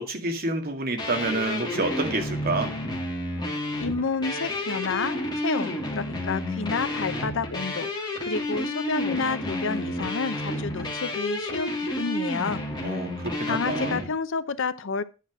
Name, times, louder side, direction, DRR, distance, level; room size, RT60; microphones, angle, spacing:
voice 1, 0.0-2.7 12.8-14.0, right 2 dB, 45° right, 5 dB, 2.0 m, -28 dB
sound 1, 1.0-14.0, left 1 dB, 20° left, 2.8 m, -30 dB
voice 2, 3.8-13.0 13.4-15.0, left 4 dB, 60° left, 13 dB, 0.7 m, -30 dB
10.0 x 5.9 x 6.0 m, 0.32 s
head